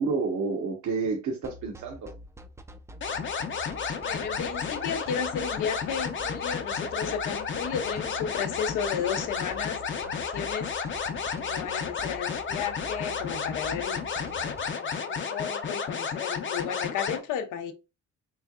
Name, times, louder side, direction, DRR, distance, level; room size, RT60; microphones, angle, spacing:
voice 1, 0.0-2.1, right 4 dB, 70° right, 0.9 m, -29 dB
sound 1, 1.4-14.6, right 1 dB, 10° right, 0.4 m, -46 dB
sound 2, 3.0-17.2, left 6 dB, 40° left, 0.7 m, -32 dB
voice 2, 3.9-10.7 11.4-17.7, left 7 dB, 90° left, 0.7 m, -34 dB
3.6 x 3.2 x 2.3 m
cardioid pair, 90°, 30 cm